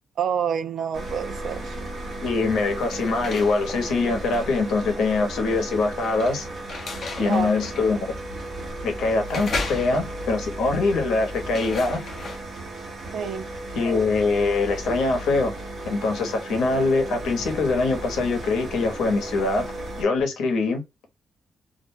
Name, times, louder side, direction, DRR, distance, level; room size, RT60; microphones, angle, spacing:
voice 1, 0.2-1.8 7.2-7.5 13.1-13.5, right 7 dB, 65° right, 0.4 m, -28 dB
sound 1, 0.9-20.0, right 1 dB, 45° right, 0.9 m, -35 dB
voice 2, 2.2-6.5 7.2-8.1 8.8-12.0 13.7-15.5 15.8-19.7 20.0-20.8, left 3 dB, 90° left, 0.9 m, -23 dB
sound 2, 2.5-12.4, left 3 dB, 45° left, 0.7 m, -37 dB
2.5 x 2.1 x 2.6 m
cardioid pair, 135°, 0 cm